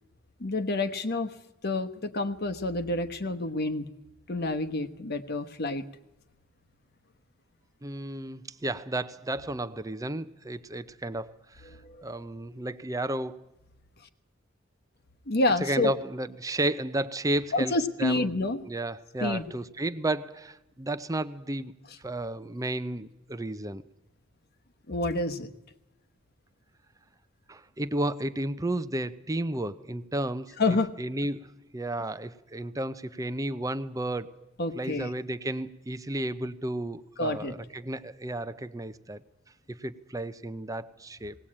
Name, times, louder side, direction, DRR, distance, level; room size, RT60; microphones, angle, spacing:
voice 1, 0.4-1.3 1.6-3.9 4.3-5.8 11.8-12.0 15.3-15.9 17.5-18.6 19.2-19.4 24.9-25.5 30.6-30.9 34.6-35.1 37.2-37.5, left 2 dB, 55° left, 9 dB, 1.2 m, -28 dB
voice 2, 7.8-11.7 12.0-13.5 15.6-17.7 18.0-18.3 18.6-21.7 22.0-23.8 27.5-31.5 31.7-34.3 34.8-39.2 39.7-41.3, right 1 dB, 15° right, 12 dB, 0.7 m, -32 dB
19.5 x 18.5 x 8.7 m, 0.93 s
head